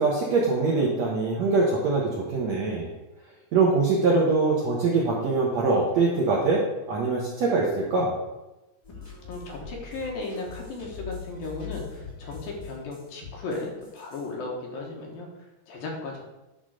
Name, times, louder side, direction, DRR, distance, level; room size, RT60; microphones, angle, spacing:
voice 1, 0.0-2.9 3.5-6.6 6.9-8.1, right 3 dB, 65° right, -4 dB, 1.7 m, -23 dB
sound 1, 8.8-14.3, left 6 dB, 15° left, 1.8 m, -42 dB
voice 2, 9.0-16.2, left 3 dB, 65° left, -1 dB, 2.9 m, -36 dB
10.5 x 3.9 x 6.3 m, 1.0 s
omnidirectional pair, 4.7 m